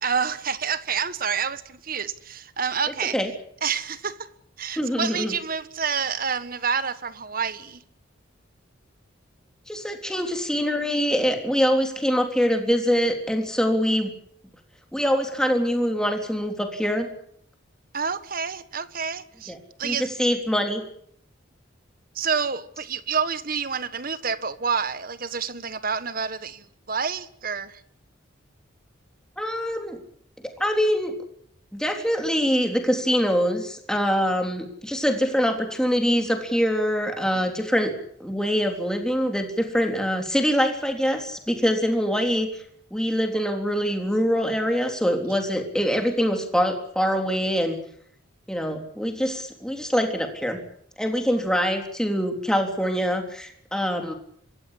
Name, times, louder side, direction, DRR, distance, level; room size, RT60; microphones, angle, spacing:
voice 1, 0.0-3.2 3.6-4.3 4.6-7.8 17.9-19.5 19.8-20.1 22.1-27.8 45.3-45.4, right 6 dB, 45° right, 1.4 m, -28 dB
voice 2, 4.8-5.4 9.7-14.1 14.9-17.1 19.5-19.6 19.8-20.8 29.4-30.0 30.4-31.1 31.7-37.9 38.2-42.5 42.9-47.8 48.5-50.6 51.0-54.1, equal, 5° left, 3.5 m, -24 dB
26.0 x 15.0 x 10.0 m
head